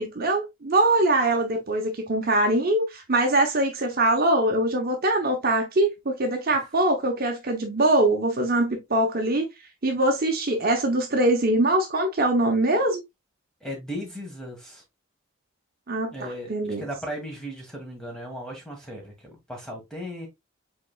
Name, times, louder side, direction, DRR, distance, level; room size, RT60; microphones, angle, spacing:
voice 1, 0.0-9.5 9.8-13.0 15.9-16.1 16.5-16.8, right 1 dB, 45° right, 0.9 m, -23 dB
voice 2, 13.6-14.8 16.1-20.3, equal, 5° left, 1.6 m, -36 dB
4.9 x 4.1 x 2.3 m
head